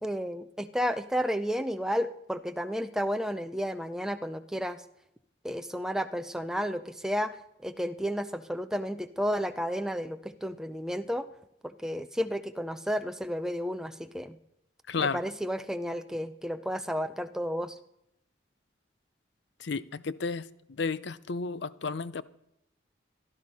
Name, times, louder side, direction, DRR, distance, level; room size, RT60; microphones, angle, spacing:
voice 1, 0.0-4.8 5.4-11.3 11.6-14.4 15.0-17.8, equal, 5° right, 0.5 m, -32 dB
voice 2, 14.9-15.2 19.6-22.2, left 4 dB, 65° left, 0.6 m, -32 dB
16.5 x 12.0 x 5.4 m
head